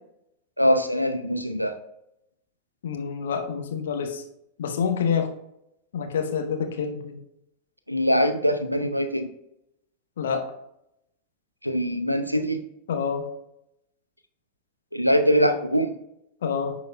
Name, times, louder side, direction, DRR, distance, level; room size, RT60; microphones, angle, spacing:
voice 1, 0.6-1.8 7.9-9.3 11.6-12.6 14.9-16.0, equal, 90° right, 8 dB, 0.5 m, -22 dB
voice 2, 2.8-4.2 4.6-5.3 5.9-7.2 10.2-10.4 12.9-13.2 16.4-16.8, left 6 dB, 60° left, 5 dB, 0.8 m, -27 dB
10.5 x 4.0 x 2.2 m, 0.81 s
figure-of-eight pair, 90°, 0 cm